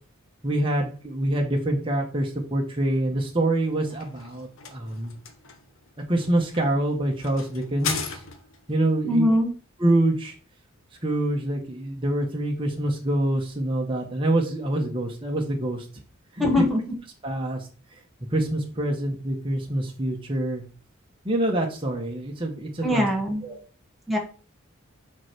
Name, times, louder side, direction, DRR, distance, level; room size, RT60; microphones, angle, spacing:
voice 1, 0.4-5.1 6.1-8.2 8.7-9.3 9.8-10.3 11.0-15.9 16.3-16.6 17.2-17.7 18.3-20.6 21.2-23.1 23.4-23.6, right 1 dB, 25° right, 0 dB, 1.2 m, -26 dB
sound 1, 3.6-8.7, left 6 dB, 65° left, 1.1 m, -37 dB
voice 2, 9.1-9.5 16.4-16.8 22.8-23.4 24.1-24.2, left 1 dB, ahead, -1 dB, 1.2 m, -21 dB
5.9 x 4.5 x 6.0 m, 0.39 s
head